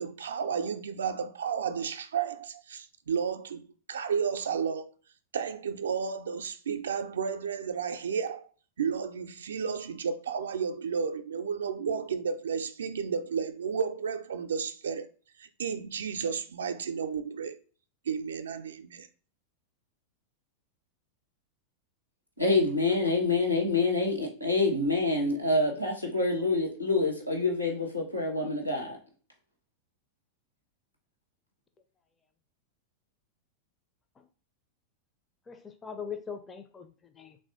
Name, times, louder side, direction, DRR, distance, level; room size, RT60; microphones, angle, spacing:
voice 1, 0.0-4.9 5.3-8.5 8.8-15.1 15.4-17.6 18.1-19.1, right 6 dB, 65° right, 0.4 m, -32 dB
voice 2, 22.4-29.0, left 3 dB, 90° left, 1.0 m, -27 dB
voice 3, 35.5-37.4, left 6 dB, 20° left, 0.4 m, -41 dB
3.5 x 2.5 x 3.5 m
figure-of-eight pair, 90°, 0 cm